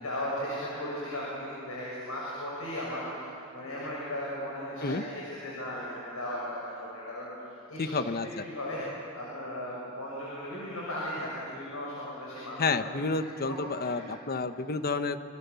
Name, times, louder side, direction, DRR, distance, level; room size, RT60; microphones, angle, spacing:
voice 1, 0.0-3.2 3.5-7.3 7.7-7.9 8.4-8.8 9.1-12.9 13.5-13.6 13.8-14.1, left 1 dB, 80° left, -5 dB, 6.8 m, -36 dB
voice 2, 7.8-8.4 12.6-15.2, left 3 dB, 45° left, 10 dB, 1.1 m, -30 dB
28.0 x 26.0 x 7.0 m, 2.6 s
head